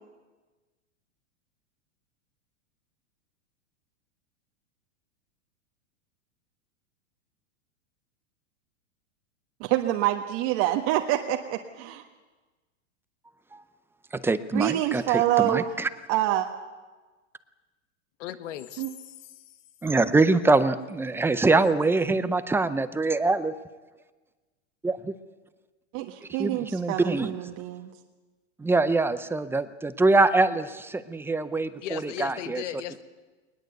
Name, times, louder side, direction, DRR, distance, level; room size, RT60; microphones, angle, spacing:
voice 1, 9.6-12.0 14.5-15.6 16.1-16.5 18.8-18.9 25.9-27.9, right 14 dB, 45° right, 3 dB, 1.4 m, -26 dB
voice 2, 14.1-15.9 19.8-23.5 24.8-25.1 26.4-27.3 28.6-32.6, right 3 dB, 5° right, 12 dB, 0.6 m, -24 dB
voice 3, 18.2-19.4 31.8-33.0, left 12 dB, 65° left, 10 dB, 1.7 m, -37 dB
20.5 x 20.0 x 8.0 m, 1.3 s
supercardioid pair, 135°, 39 cm